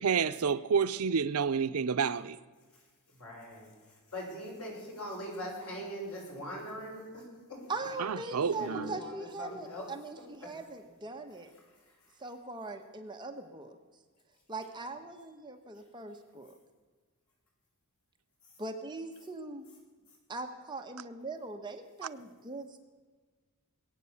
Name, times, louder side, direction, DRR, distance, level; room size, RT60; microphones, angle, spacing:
voice 1, 0.0-2.4 8.0-9.0, right 6 dB, 80° right, 0.6 m, -29 dB
voice 2, 3.2-3.7 4.1-7.2 7.5-7.6 8.6-9.9 10.4-10.5, equal, 75° left, 6.1 m, -41 dB
voice 3, 7.7-11.5 12.2-13.8 14.5-16.5 18.6-19.7 20.3-22.8, right 2 dB, 20° right, 1.2 m, -41 dB
21.0 x 9.2 x 7.1 m
head